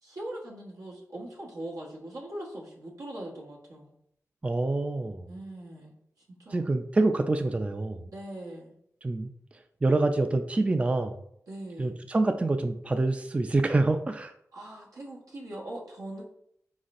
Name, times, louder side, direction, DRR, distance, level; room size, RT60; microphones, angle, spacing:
voice 1, 0.0-3.9 5.3-6.0 6.3-6.7 8.1-8.8 11.5-11.9 14.5-16.2, right 1 dB, 80° right, -3 dB, 1.2 m, -41 dB
voice 2, 4.4-5.4 6.5-8.1 9.0-9.3 9.8-11.1 11.8-14.3, right 2 dB, 20° right, 7 dB, 0.3 m, -26 dB
4.5 x 4.0 x 2.5 m, 0.71 s
wide cardioid pair, 70°, 6 cm